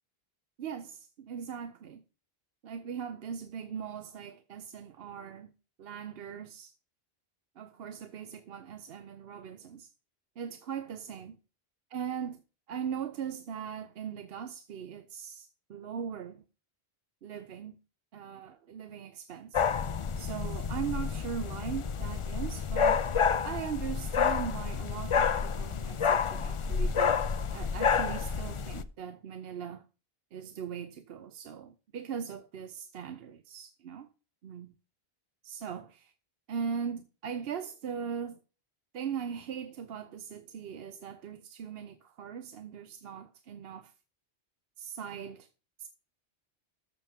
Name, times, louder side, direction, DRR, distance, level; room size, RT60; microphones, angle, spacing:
voice 1, 0.6-2.0 2.6-5.5 5.8-6.7 7.6-9.9 10.4-11.4 11.9-12.4 12.7-16.4 17.2-17.8 18.1-19.6 20.2-23.1 23.4-27.2 27.5-29.8 30.3-34.1 34.4-34.7 35.4-36.1 36.5-38.4 38.9-43.9 44.8-45.5 45.8-45.9, right 7 dB, 75° right, 0.9 m, -39 dB
sound 1, 19.5-28.8, left 6 dB, 45° left, 0.4 m, -29 dB
13.0 x 7.0 x 2.8 m
omnidirectional pair, 1.0 m